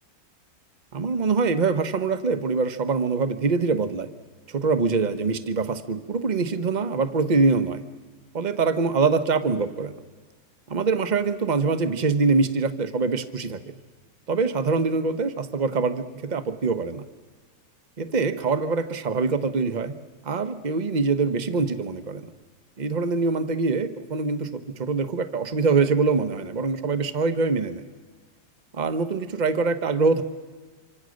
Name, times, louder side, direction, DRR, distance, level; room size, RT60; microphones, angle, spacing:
voice 1, 0.9-4.1 4.5-7.8 8.3-10.0 10.7-13.7 14.3-17.0 18.0-19.9 20.2-22.3 22.8-27.8 28.7-30.2, right 4 dB, 30° right, 10 dB, 1.0 m, -24 dB
26.0 x 25.5 x 6.5 m, 1.4 s
omnidirectional pair, 1.9 m